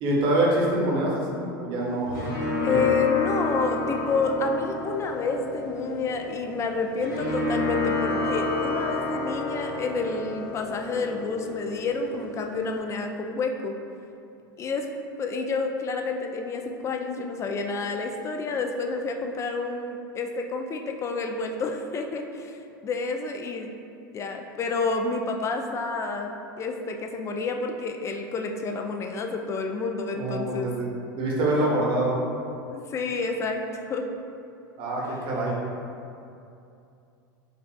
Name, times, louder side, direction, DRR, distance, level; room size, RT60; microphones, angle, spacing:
voice 1, 0.0-2.2 2.7-2.8 30.1-30.9 31.1-32.2 34.8-35.6, right 1 dB, 45° right, -3 dB, 0.8 m, -25 dB
sound 1, 1.8-12.8, left 3 dB, 70° left, 1.0 m, -30 dB
voice 2, 2.6-13.7 14.6-14.9 15.2-23.7 24.1-30.7 32.7-34.1, left 4 dB, 25° left, 4 dB, 0.3 m, -29 dB
4.7 x 2.3 x 2.3 m, 2.6 s
hypercardioid pair, 95°, 11 cm